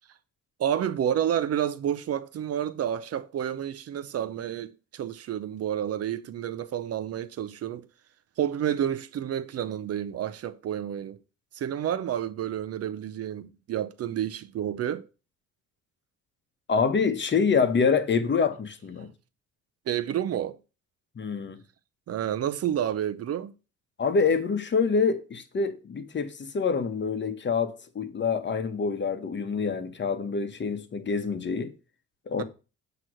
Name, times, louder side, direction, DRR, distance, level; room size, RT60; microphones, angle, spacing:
voice 1, 0.6-7.9 8.4-11.2 11.5-15.1 19.0-19.1 19.9-20.6 22.1-23.5 32.4-32.5, right 10 dB, 55° right, 0.5 m, -30 dB
voice 2, 16.7-19.1 21.1-21.6 24.0-31.7 32.3-32.4, left 5 dB, 40° left, 1.0 m, -26 dB
7.6 x 3.0 x 6.1 m
cardioid pair, 90°, 30 cm